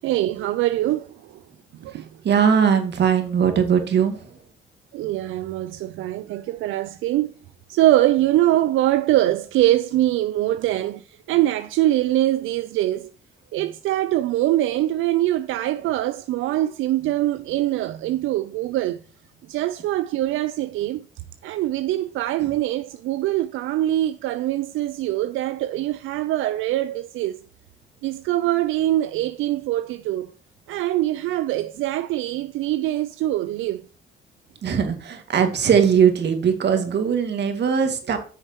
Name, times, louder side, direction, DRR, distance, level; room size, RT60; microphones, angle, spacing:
voice 1, 0.0-1.4 1.8-2.1 4.9-7.3 7.7-13.1 13.5-19.0 19.5-21.0 21.4-27.4 28.0-30.3 30.7-33.8, right 14 dB, 85° right, 0.5 m, -23 dB
voice 2, 1.9-4.3 34.6-38.2, right 7 dB, 60° right, 2.1 m, -20 dB
9.2 x 6.5 x 2.9 m
cardioid pair, 90°, 20 cm